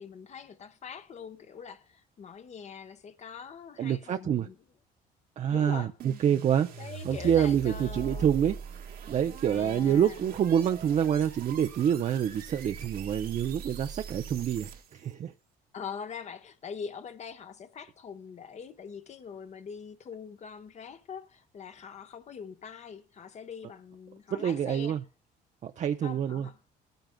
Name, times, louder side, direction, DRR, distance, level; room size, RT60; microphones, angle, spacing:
voice 1, 0.0-4.6 5.5-5.9 6.8-8.3 9.4-10.3 15.7-25.0 26.0-26.6, left 6 dB, 40° left, 1.1 m, -43 dB
voice 2, 3.8-4.5 5.4-6.7 7.0-8.6 9.1-15.3 24.3-25.0 25.6-26.5, right 9 dB, 45° right, 0.6 m, -27 dB
sound 1, 6.0-15.1, right 6 dB, 60° right, 1.4 m, -42 dB
20.0 x 9.1 x 2.2 m
cardioid pair, 110°, 17 cm